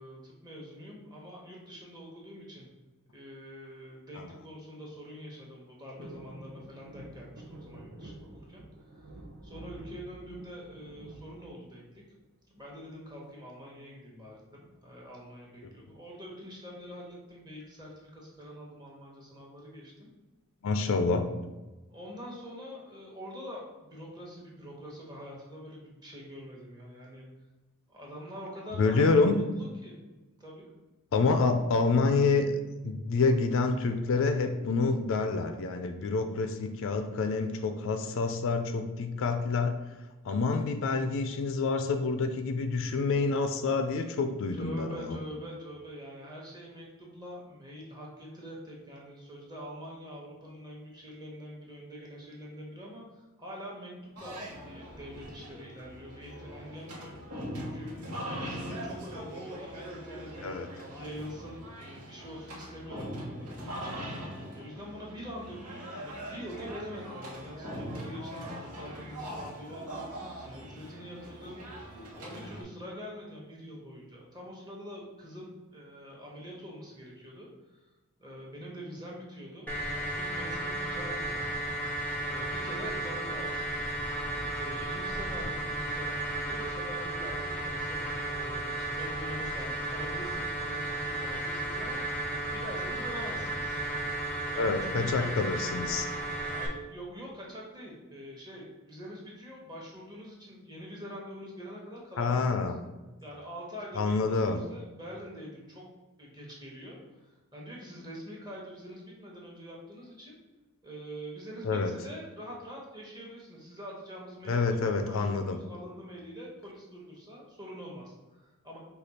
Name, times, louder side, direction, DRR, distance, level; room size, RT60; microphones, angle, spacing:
voice 1, 0.0-2.7 3.1-8.6 8.9-9.1 9.4-12.0 12.5-20.1 21.9-27.3 27.9-30.0 30.4-30.7 44.5-57.1 57.5-60.5 60.9-64.3 64.5-70.1 70.4-77.8 78.2-81.4 82.2-83.8 84.1-92.0 92.5-93.8 94.4-95.3 96.1-102.6 103.2-105.8 106.2-110.4 110.8-118.8, equal, 20° right, -3 dB, 1.0 m, -45 dB
sound 1, 6.0-12.2 12.6-13.2 14.5-14.9 15.1-15.2 15.5-15.8 16.7-17.6 18.1-18.2, right 1 dB, 45° right, 0.7 m, -49 dB
voice 2, 20.6-21.3 28.7-29.4 31.1-32.5 32.8-39.8 40.2-45.2 60.4-60.7 94.6-96.1 102.2-102.7 104.0-104.6 111.6-111.9 114.5-115.6, left 4 dB, 60° left, 6 dB, 0.4 m, -27 dB
sound 2, 54.2-72.6, equal, 80° right, 1.1 m, -41 dB
sound 3, 79.7-96.7, right 2 dB, 10° left, 0.7 m, -34 dB
5.0 x 2.3 x 4.2 m, 1.1 s
head